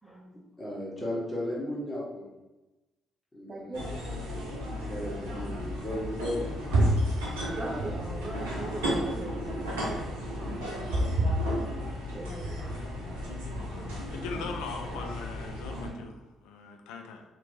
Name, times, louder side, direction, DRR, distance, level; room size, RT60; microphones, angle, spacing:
voice 1, 0.0-0.4 3.5-4.0 7.4-9.3 9.9-10.0 10.6-10.9 12.1-12.7, right 2 dB, 25° right, -1 dB, 0.8 m, -40 dB
voice 2, 0.6-2.3 3.3-3.8 4.8-6.7 9.4-9.7 11.1-11.3 12.6-12.7, left 1 dB, 25° left, -6 dB, 1.5 m, -36 dB
sound 1, 3.7-15.9, equal, 75° right, 0.6 m, -32 dB
voice 3, 14.1-17.2, left 4 dB, 65° left, 4 dB, 0.3 m, -40 dB
3.0 x 2.9 x 2.9 m, 1.0 s
figure-of-eight pair, 40°, 0 cm